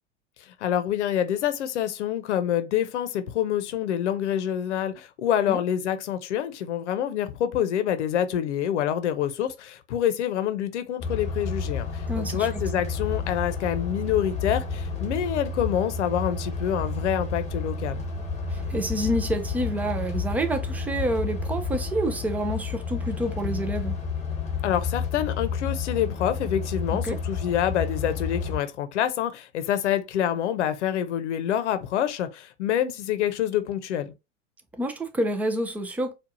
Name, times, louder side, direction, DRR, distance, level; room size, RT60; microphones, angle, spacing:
voice 1, 0.4-18.0 24.6-34.1, left 10 dB, 65° left, 0.8 m, -27 dB
sound 1, 11.0-28.6, left 4 dB, 20° left, 1.1 m, -31 dB
voice 2, 12.1-12.5 18.5-24.0 26.9-27.2 34.7-36.1, right 1 dB, 5° right, 0.4 m, -28 dB
4.6 x 2.4 x 2.6 m
hypercardioid pair, 100°, 38 cm